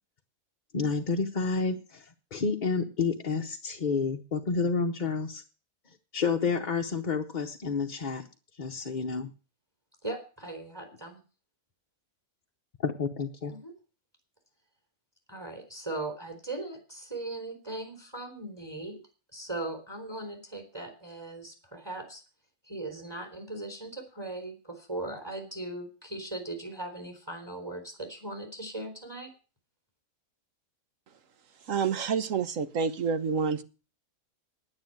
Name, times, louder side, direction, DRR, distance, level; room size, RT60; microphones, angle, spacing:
voice 1, 0.7-5.4 6.1-8.2 8.6-9.3 12.8-13.5, left 5 dB, 40° left, 2 dB, 0.9 m, -30 dB
voice 2, 10.0-11.2 13.5-13.7 15.3-19.0 19.3-22.2 22.7-29.3, right 2 dB, 15° right, 3 dB, 3.6 m, -39 dB
voice 3, 31.7-33.6, right 6 dB, 65° right, 12 dB, 1.4 m, -28 dB
9.9 x 9.7 x 7.7 m, 0.34 s
omnidirectional pair, 1.5 m